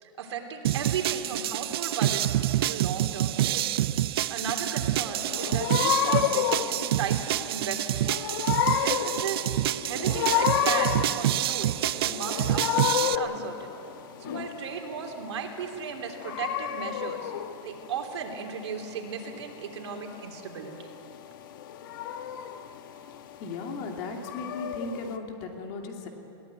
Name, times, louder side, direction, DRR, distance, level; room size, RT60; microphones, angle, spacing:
voice 1, 0.0-2.4 2.7-3.9 4.3-8.1 8.8-9.5 9.8-13.7 14.2-17.3 17.6-20.9, right 6 dB, 80° right, 3 dB, 3.3 m, -36 dB
sound 1, 0.6-13.2, right 13 dB, 60° right, 0.5 m, -27 dB
sound 2, 5.2-25.2, left 9 dB, 50° left, 1.2 m, -31 dB
voice 2, 23.4-26.1, left 3 dB, 35° left, 2 dB, 2.6 m, -36 dB
21.5 x 17.5 x 9.4 m, 2.8 s
supercardioid pair, 175°, 14 cm